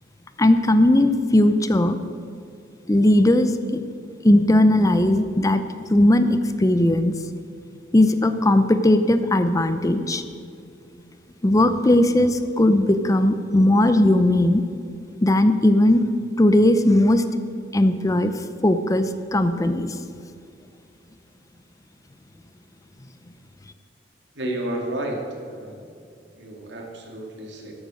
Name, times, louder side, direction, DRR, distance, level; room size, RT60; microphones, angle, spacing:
voice 1, 0.4-2.0 2.9-3.8 4.2-5.6 5.9-7.1 7.9-10.2 11.4-14.6 15.2-16.0 16.4-17.2 17.7-18.3 18.6-19.9, left 1 dB, 20° left, 10 dB, 0.6 m, -18 dB
voice 2, 24.3-25.9 26.3-27.7, right 1 dB, 80° right, 0 dB, 2.6 m, -31 dB
13.5 x 8.7 x 6.4 m, 2.5 s
head